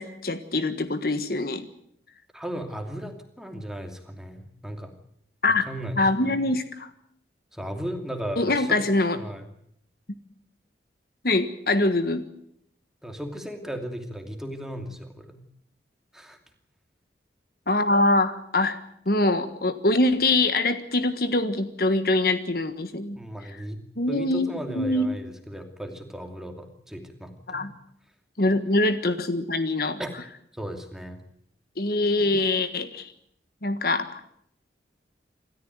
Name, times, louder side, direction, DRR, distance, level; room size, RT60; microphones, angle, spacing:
voice 1, 0.0-1.7 5.4-5.7 6.0-6.9 8.4-9.2 11.2-12.3 17.7-18.8 19.0-23.2 23.5-23.6 24.0-25.1 27.5-27.7 28.4-30.0 31.8-33.1 33.6-34.2, left 2 dB, 55° left, 10 dB, 1.5 m, -24 dB
voice 2, 2.3-4.9 5.7-6.4 7.5-8.8 9.1-9.5 13.0-15.4 16.1-16.4 23.1-23.8 24.1-27.7 30.0-30.1 30.5-31.2, equal, 5° right, 4 dB, 2.6 m, -36 dB
27.0 x 14.0 x 9.4 m, 0.72 s
head